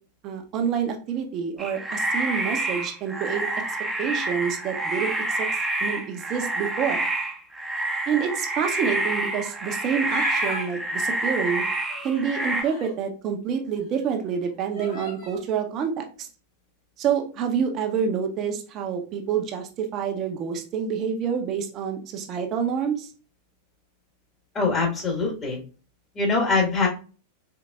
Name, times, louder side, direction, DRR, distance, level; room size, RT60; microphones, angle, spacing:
voice 1, 0.2-3.4 4.0-5.5 5.8-7.1 8.1-11.7 12.0-16.3 17.0-23.1, right 7 dB, 35° right, 4 dB, 0.8 m, -27 dB
sound 1, 1.6-12.6, right 2 dB, 5° right, 0.9 m, -28 dB
Human voice, 10.0-10.7 11.9-13.0 13.8-13.9 14.7-15.4, left 2 dB, 55° left, 2.0 m, -36 dB
voice 2, 24.6-25.6 26.2-26.9, left 3 dB, 25° left, -1 dB, 1.7 m, -23 dB
4.7 x 3.7 x 2.4 m, 0.38 s
figure-of-eight pair, 90°, 0 cm